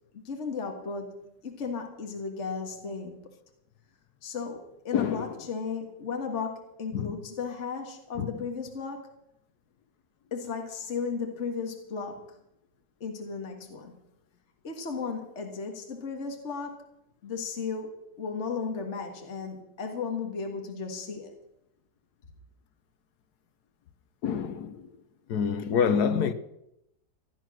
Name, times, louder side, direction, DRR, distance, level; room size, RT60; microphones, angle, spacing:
voice 1, 0.1-3.2 4.2-9.1 10.3-12.3 13.0-13.9 14.6-16.8 17.2-17.9 18.2-21.3, left 5 dB, 40° left, 2.0 m, -35 dB
voice 2, 4.9-5.3 6.9-7.1 8.2-8.3 24.2-24.9 25.3-26.3, left 7 dB, 65° left, 1.5 m, -27 dB
16.5 x 11.0 x 6.1 m
omnidirectional pair, 1.9 m